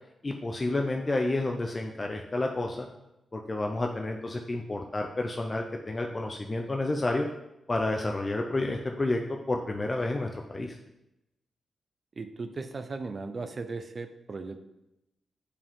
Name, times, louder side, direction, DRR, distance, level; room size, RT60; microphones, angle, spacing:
voice 1, 0.2-2.9 3.3-7.3 7.7-9.2 9.5-10.8, left 2 dB, 30° left, 2 dB, 0.6 m, -30 dB
voice 2, 12.2-14.6, right 3 dB, 40° right, 8 dB, 0.7 m, -37 dB
8.5 x 4.9 x 3.6 m, 0.90 s
cardioid pair, 95°, 0 cm